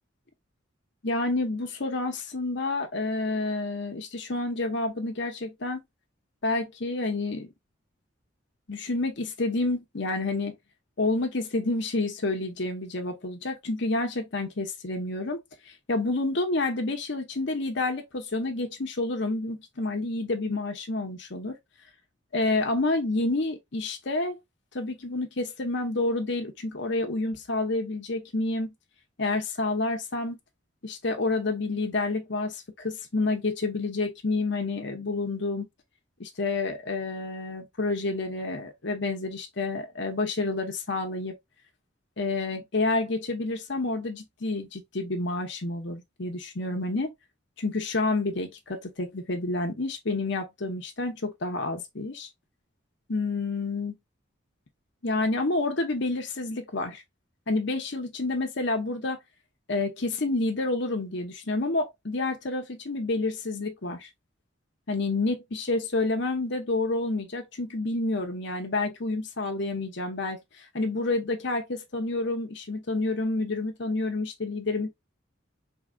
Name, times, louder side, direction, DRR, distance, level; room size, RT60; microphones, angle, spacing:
voice 1, 1.0-5.8 6.4-7.5 8.7-10.5 11.0-15.4 15.7-21.6 22.3-24.4 24.7-28.7 29.2-30.4 30.8-35.7 36.2-41.3 42.2-47.1 47.6-52.3 53.1-53.9 55.0-57.0 57.5-59.2 59.7-64.1 64.9-74.9, left 2 dB, 60° left, 0.9 m, -29 dB
4.8 x 3.5 x 2.3 m
head